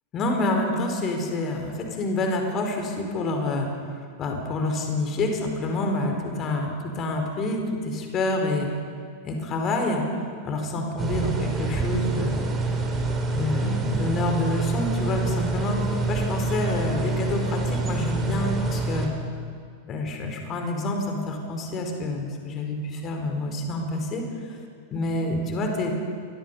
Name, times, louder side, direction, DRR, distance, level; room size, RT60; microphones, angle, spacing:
voice 1, 0.1-8.7 9.2-12.6 13.3-19.1 19.9-24.2 24.9-25.9, left 2 dB, 30° left, 3 dB, 4.8 m, -27 dB
sound 1, 11.0-19.1, right 3 dB, 20° right, 4.0 m, -27 dB
30.0 x 24.0 x 5.7 m, 2.2 s
figure-of-eight pair, 90°, 0 cm